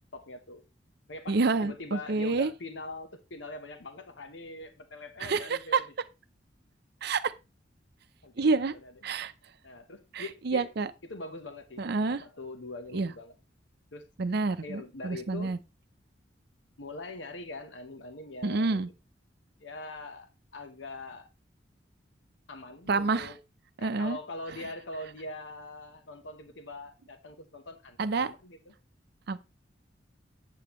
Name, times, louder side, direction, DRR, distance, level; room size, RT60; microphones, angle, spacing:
voice 1, 0.1-0.6 1.1-5.8 8.2-8.9 9.6-10.7 11.0-13.3 13.9-14.1 14.6-15.5 16.8-18.9 19.6-21.3 22.5-23.4 23.8-28.7, left 2 dB, 80° left, 1.0 m, -43 dB
voice 2, 1.3-2.5 5.2-5.8 7.0-7.3 8.4-8.7 9.0-9.3 10.1-10.9 11.8-12.2 12.9-13.1 14.2-15.6 18.4-18.9 22.9-23.3 23.8-24.2 28.0-28.3 29.3-29.4, right 4 dB, 60° right, 0.6 m, -28 dB
8.8 x 7.7 x 3.0 m
head